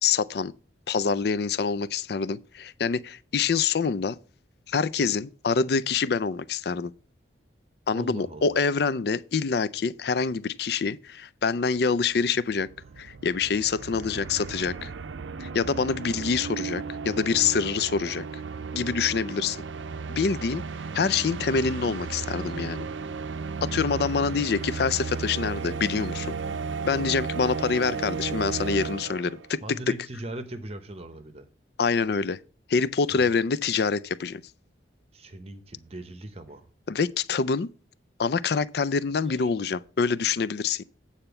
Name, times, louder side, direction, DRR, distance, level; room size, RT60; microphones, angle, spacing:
voice 1, 0.0-0.5 0.9-4.2 4.7-6.9 7.9-12.7 13.0-14.9 15.4-18.2 18.7-19.6 20.1-20.6 20.9-22.9 23.6-26.3 26.8-29.6 31.8-32.4 32.7-34.4 36.9-37.7 38.2-40.8, left 5 dB, 55° left, 0.4 m, -26 dB
voice 2, 7.9-8.6 29.6-31.5 33.1-33.3 35.1-36.7 39.3-39.5, right 1 dB, 30° right, 0.8 m, -40 dB
sound 1, 12.0-29.5, right 5 dB, 80° right, 0.5 m, -34 dB
9.0 x 4.3 x 6.8 m
head